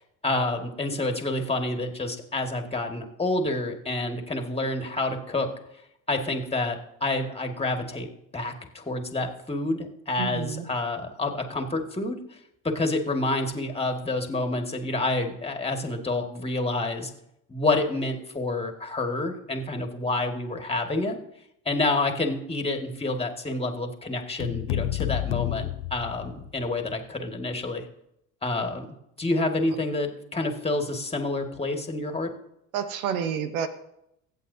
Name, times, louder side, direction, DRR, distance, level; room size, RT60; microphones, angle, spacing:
voice 1, 0.2-5.5 6.1-8.1 8.3-12.2 12.6-17.1 17.5-21.2 21.7-27.8 28.4-28.9 29.2-32.3, left 2 dB, 15° left, 4 dB, 2.0 m, -28 dB
voice 2, 10.2-10.7 32.7-33.7, right 8 dB, 80° right, 11 dB, 1.1 m, -29 dB
sound 1, 24.4-26.7, left 17 dB, 70° left, 0.6 m, -30 dB
24.0 x 8.2 x 2.8 m, 0.81 s
hypercardioid pair, 65°, 42 cm